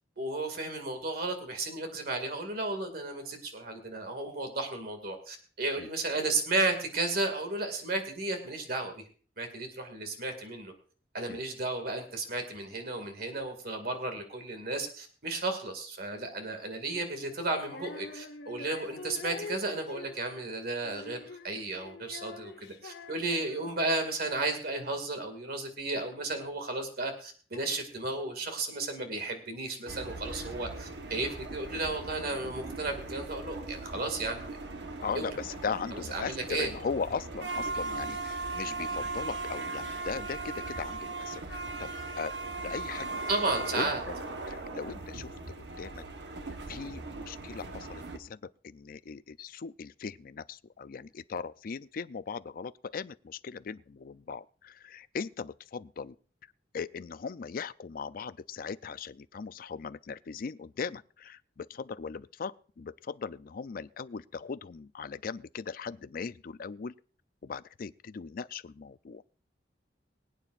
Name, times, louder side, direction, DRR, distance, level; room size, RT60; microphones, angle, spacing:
voice 1, 0.2-9.1 9.4-10.7 11.1-34.6 35.1-35.3 35.9-36.7 43.3-44.0, right 2 dB, 60° right, 2.2 m, -33 dB
Female singing, 17.6-24.0, left 3 dB, 75° left, 1.3 m, -45 dB
sound 1, 29.9-48.2, right 3 dB, 80° right, 1.2 m, -38 dB
voice 2, 35.0-42.3 42.6-43.4 43.7-44.1 44.5-45.3 45.8-46.0 46.7-48.4 48.6-56.2 56.7-66.9 67.4-69.2, left 5 dB, 55° left, 0.4 m, -39 dB
23.5 x 9.0 x 2.5 m
head